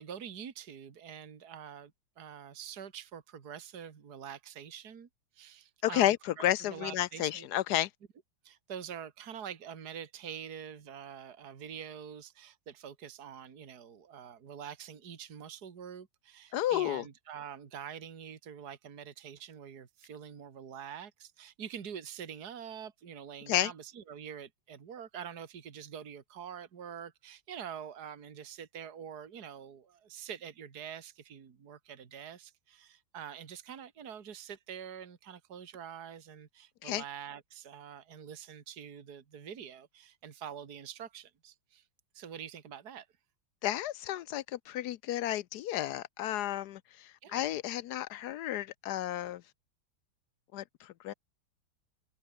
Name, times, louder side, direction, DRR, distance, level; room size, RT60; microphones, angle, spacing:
voice 1, 0.0-5.1 5.3-7.5 8.4-41.8 42.1-43.1 47.2-47.4, right 8 dB, 55° right, 2.3 m, -45 dB
voice 2, 5.8-7.9 16.5-17.0 23.5-23.7 36.8-37.0 43.6-49.4 50.5-51.1, left 13 dB, 70° left, 1.0 m, -32 dB
omnidirectional pair, 2.2 m